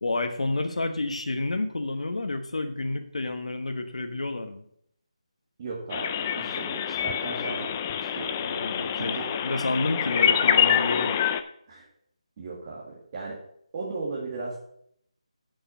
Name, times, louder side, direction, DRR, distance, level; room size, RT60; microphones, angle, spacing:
voice 1, 0.0-4.6 8.4-11.2, left 2 dB, 80° left, 6 dB, 1.2 m, -30 dB
voice 2, 5.6-7.7 8.2-8.3 8.9-9.3 11.7-11.9 12.4-13.4 13.7-14.6, right 3 dB, 25° right, -6 dB, 1.9 m, -36 dB
sound 1, 5.9-11.4, left 9 dB, 15° left, 0.3 m, -26 dB
9.1 x 5.5 x 7.2 m, 0.70 s
figure-of-eight pair, 170°, 3 cm